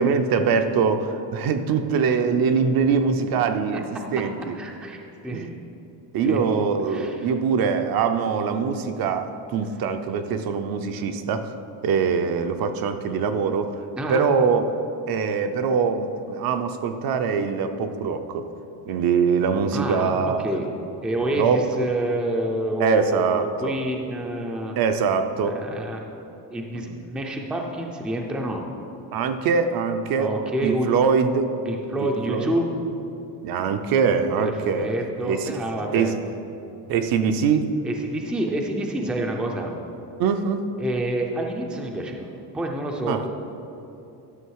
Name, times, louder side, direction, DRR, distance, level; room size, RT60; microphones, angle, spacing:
voice 1, 0.0-3.9 4.1-4.5 5.3-5.6 6.1-11.5 11.8-13.8 14.1-14.8 15.1-18.5 18.9-20.4 21.3-21.7 22.8-23.7 24.8-25.6 26.7-27.0 29.1-30.4 30.6-31.5 32.0-32.5 33.4-35.6 35.9-36.2 36.9-37.6 40.2-40.7 43.1-43.3, right 5 dB, 55° right, 7 dB, 0.6 m, -23 dB
voice 2, 4.6-5.0 5.2-5.5 6.2-6.4 6.9-7.3 14.0-14.2 19.7-20.7 21.0-24.7 25.4-26.2 26.5-28.6 30.2-30.9 31.7-32.7 34.4-36.1 37.8-39.7 40.8-43.3, right 1 dB, ahead, 1 dB, 0.4 m, -28 dB
11.5 x 6.4 x 4.7 m, 2.8 s
cardioid pair, 170°, 42 cm